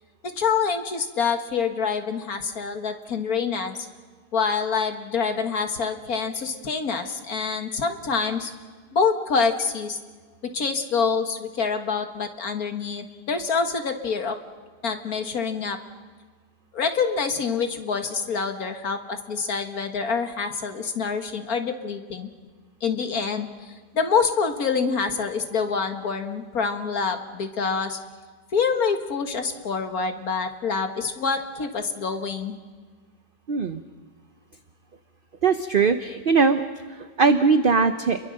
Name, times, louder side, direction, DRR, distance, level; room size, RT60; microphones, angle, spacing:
voice 1, 0.2-3.8 4.3-8.5 8.9-10.0 10.5-14.4 14.8-15.8 16.7-22.3 22.8-28.0 28.5-32.6, left 5 dB, 60° left, 6 dB, 2.1 m, -26 dB
voice 2, 33.5-33.8 35.4-36.6 37.2-38.2, right 4 dB, 45° right, 9 dB, 0.8 m, -20 dB
29.5 x 22.5 x 6.5 m, 1.5 s
omnidirectional pair, 1.8 m